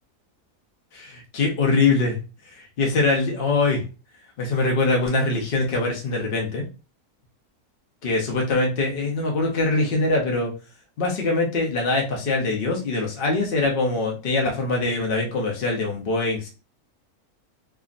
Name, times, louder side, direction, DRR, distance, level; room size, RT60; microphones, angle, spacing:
voice 1, 0.9-2.2 2.5-3.8 4.4-6.6 8.0-10.5 11.0-16.5, left 3 dB, 45° left, 0 dB, 0.8 m, -23 dB
3.5 x 2.0 x 2.5 m, 0.32 s
omnidirectional pair, 1.6 m